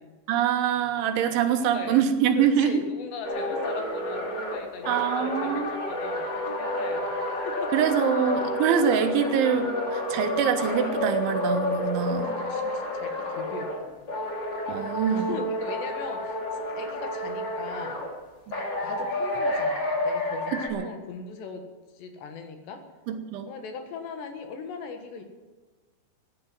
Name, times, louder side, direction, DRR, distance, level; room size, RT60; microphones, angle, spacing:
voice 1, 0.3-2.8 4.9-5.8 7.7-12.3 14.7-15.4 20.5-20.8 23.1-23.5, right 8 dB, 80° right, 7 dB, 3.6 m, -24 dB
voice 2, 0.8-1.1 1.4-2.1 2.4-7.7 10.1-10.3 12.2-14.0 15.1-16.4 16.7-18.0 18.8-21.6 21.9-22.8 23.5-25.2, left 5 dB, 70° left, 5 dB, 3.6 m, -40 dB
sound 1, 3.2-13.8 14.1-18.1 18.5-20.7, left 1 dB, 30° left, 2.3 m, -30 dB
16.5 x 10.5 x 7.7 m, 1.3 s
omnidirectional pair, 5.4 m